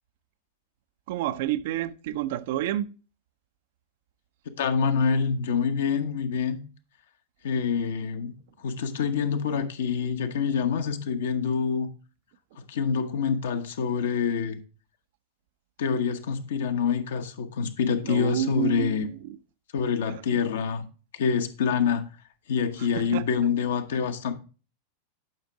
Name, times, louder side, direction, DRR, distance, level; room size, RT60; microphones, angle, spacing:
voice 1, 1.1-2.9 18.0-19.4 20.1-20.5 22.8-23.3, right 13 dB, 50° right, 0.5 m, -30 dB
voice 2, 4.6-6.6 7.4-8.3 8.6-11.9 12.7-14.6 15.8-19.1 19.7-20.8 21.2-22.0 22.5-24.3, left 6 dB, 60° left, 1.0 m, -26 dB
10.5 x 5.9 x 3.7 m
figure-of-eight pair, 90°, 0 cm